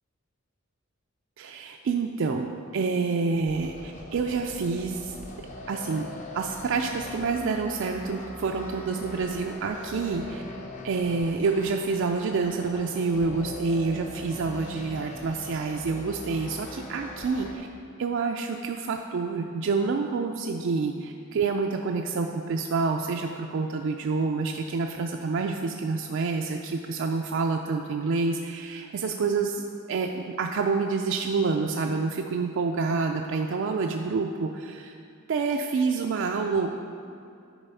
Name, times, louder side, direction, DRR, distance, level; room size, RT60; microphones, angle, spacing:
voice 1, 1.4-2.5 2.7-5.2 5.7-6.1 6.3-10.4 10.8-17.7 18.0-34.9 35.3-36.7, right 4 dB, 65° right, 3 dB, 0.4 m, -28 dB
sound 1, 3.5-17.6, left 2 dB, 35° left, 0.7 m, -41 dB
10.0 x 4.1 x 5.5 m, 2.5 s
head